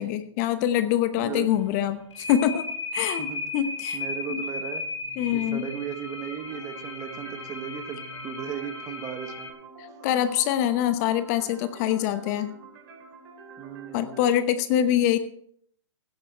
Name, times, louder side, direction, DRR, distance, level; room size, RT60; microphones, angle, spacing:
voice 1, 0.0-2.7 2.9-3.3 3.5-4.0 4.3-4.4 5.2-5.7 9.8-12.5 13.9-15.2, left 11 dB, 35° left, 11 dB, 0.9 m, -24 dB
sound 1, 1.4-9.5, left 3 dB, 65° left, 5.5 m, -36 dB
voice 2, 3.9-4.9 5.3-9.5 13.6-14.2, right 9 dB, 20° right, 7 dB, 1.5 m, -36 dB
sound 2, 6.4-14.4, right 4 dB, 40° right, 4.1 m, -47 dB
16.5 x 10.0 x 4.5 m, 0.65 s
hypercardioid pair, 135°, 16 cm